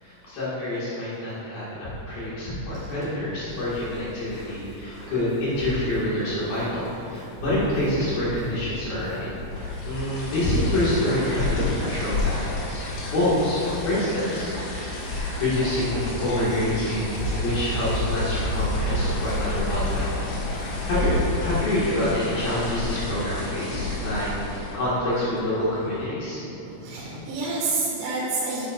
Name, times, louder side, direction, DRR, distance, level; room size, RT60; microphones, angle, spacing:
voice 1, 0.0-14.5 14.8-20.2 20.6-26.4, left 1 dB, 55° left, -11 dB, 3.1 m, -27 dB
sound 1, 3.4-21.6, equal, 45° right, 1.4 m, -34 dB
sound 2, 9.5-24.9, left 2 dB, 70° left, 4.4 m, -32 dB
sound 3, 18.3-26.1, left 2 dB, 85° left, 3.5 m, -39 dB
voice 2, 26.6-28.7, right 3 dB, 75° right, -8 dB, 4.3 m, -30 dB
10.0 x 9.8 x 2.5 m, 2.9 s
omnidirectional pair, 5.8 m